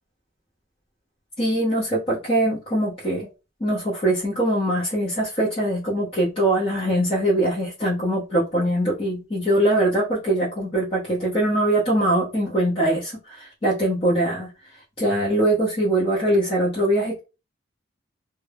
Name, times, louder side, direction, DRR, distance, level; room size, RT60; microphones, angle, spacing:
voice 1, 1.4-3.3 3.6-14.5 15.0-17.2, right 1 dB, 30° left, -6 dB, 0.6 m, -22 dB
2.2 x 2.0 x 3.3 m, 0.31 s
head